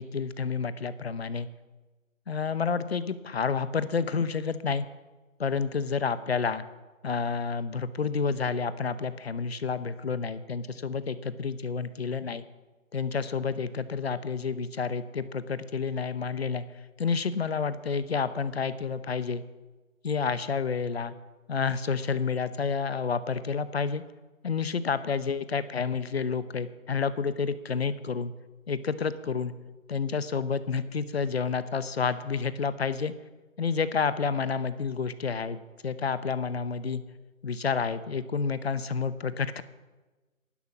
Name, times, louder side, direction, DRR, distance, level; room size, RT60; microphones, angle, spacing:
voice 1, 0.0-1.5 2.3-4.9 5.4-6.6 7.0-12.4 12.9-16.6 17.0-19.4 20.0-21.1 21.5-24.0 24.4-28.3 28.7-29.5 29.9-33.1 33.6-35.6 35.8-37.0 37.4-39.6, left 5 dB, 45° left, 14 dB, 0.8 m, -29 dB
11.5 x 11.0 x 6.1 m, 1.2 s
hypercardioid pair, 175°, 42 cm